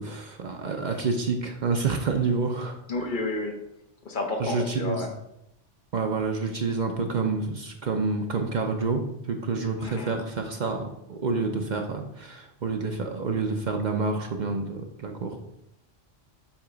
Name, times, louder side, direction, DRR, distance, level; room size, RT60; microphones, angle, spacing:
voice 1, 0.0-2.8 4.4-5.1 5.9-15.4, right 4 dB, 50° right, 4 dB, 0.6 m, -28 dB
voice 2, 2.9-3.5 4.0-5.1 9.8-10.1, left 3 dB, 45° left, 2 dB, 1.0 m, -30 dB
7.1 x 2.9 x 4.9 m, 0.81 s
omnidirectional pair, 1.2 m